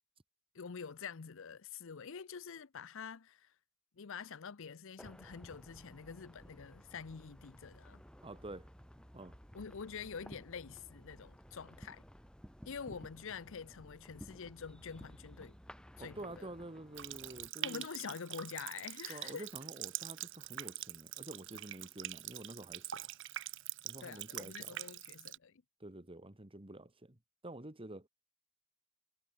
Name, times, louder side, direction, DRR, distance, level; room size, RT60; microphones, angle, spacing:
voice 1, 0.5-3.5 4.0-8.0 9.5-12.0 12.7-15.6 16.0-16.5 17.6-19.5 24.0-25.6, left 6 dB, 65° left, 0.6 m, -46 dB
sound 1, 5.0-17.5, equal, 5° left, 1.6 m, -55 dB
voice 2, 8.2-8.7 9.1-9.4 16.0-17.8 19.1-23.1 23.8-24.9 25.8-27.2 27.4-28.1, right 1 dB, 25° right, 2.2 m, -49 dB
Water tap faucet, 16.9-25.4, right 13 dB, 65° right, 1.6 m, -44 dB
head